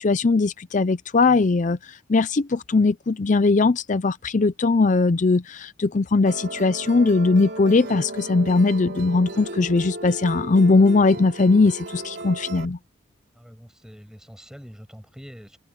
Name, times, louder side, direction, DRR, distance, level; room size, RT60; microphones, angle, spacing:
voice 1, 0.0-12.8, left 3 dB, 40° left, 0.5 m, -20 dB
Musical instrument, 6.3-12.7, right 1 dB, 55° right, 3.9 m, -35 dB
voice 2, 13.4-15.6, equal, 5° right, 6.6 m, -44 dB
open air
head